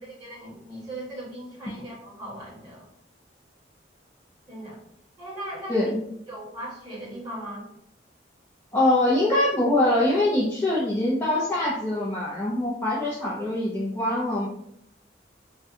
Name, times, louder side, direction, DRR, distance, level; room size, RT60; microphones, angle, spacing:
voice 1, 0.0-2.9 4.5-4.8 5.2-5.8 6.3-7.7 12.8-13.1, right 1 dB, 20° right, -8 dB, 1.4 m, -38 dB
voice 2, 8.7-14.5, left 1 dB, 10° left, -7 dB, 0.4 m, -23 dB
2.7 x 2.2 x 3.5 m, 0.73 s
head